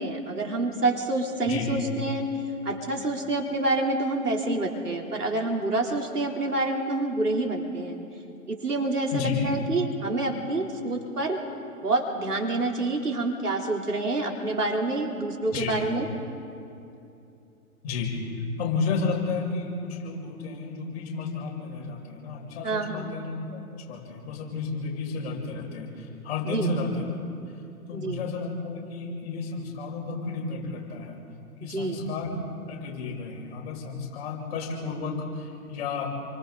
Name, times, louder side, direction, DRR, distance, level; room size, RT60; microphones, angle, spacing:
voice 1, 0.0-2.3 2.7-8.0 8.5-11.4 11.8-16.1 22.6-23.1 26.4-26.7 27.9-28.2 31.7-32.1, right 2 dB, 80° right, 1 dB, 3.8 m, -27 dB
voice 2, 9.1-9.4 15.5-15.8 17.8-27.1 27.9-31.2 31.6-32.3 32.6-36.1, left 4 dB, 45° left, -1 dB, 6.4 m, -32 dB
30.0 x 24.0 x 4.1 m, 2.7 s
figure-of-eight pair, 125°, 46 cm